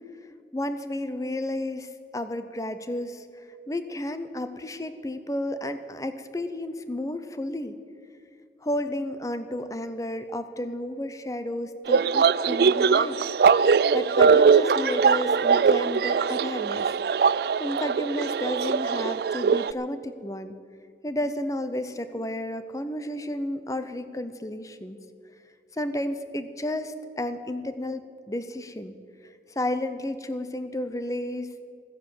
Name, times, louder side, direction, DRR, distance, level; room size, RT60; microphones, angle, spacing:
voice 1, 0.5-7.8 8.6-13.3 13.9-16.9 17.6-20.5 21.0-25.0 25.7-28.0 28.3-29.0 29.5-31.5, left 1 dB, 20° left, 10 dB, 0.7 m, -32 dB
sound 1, 11.9-19.7, right 5 dB, 60° right, 0.3 m, -21 dB
14.0 x 10.0 x 7.8 m, 2.3 s
head